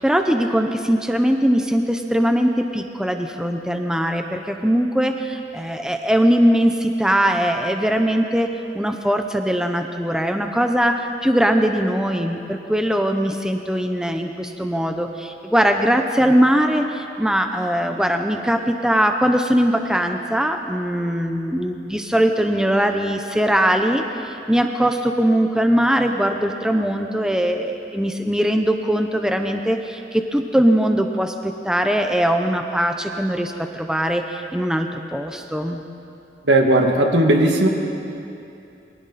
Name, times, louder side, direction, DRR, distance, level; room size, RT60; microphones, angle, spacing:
voice 1, 0.0-8.5 8.7-35.8, equal, 5° right, 4 dB, 0.8 m, -21 dB
voice 2, 36.5-37.7, right 1 dB, 80° right, 2 dB, 2.2 m, -16 dB
28.0 x 23.0 x 4.2 m, 2.7 s
head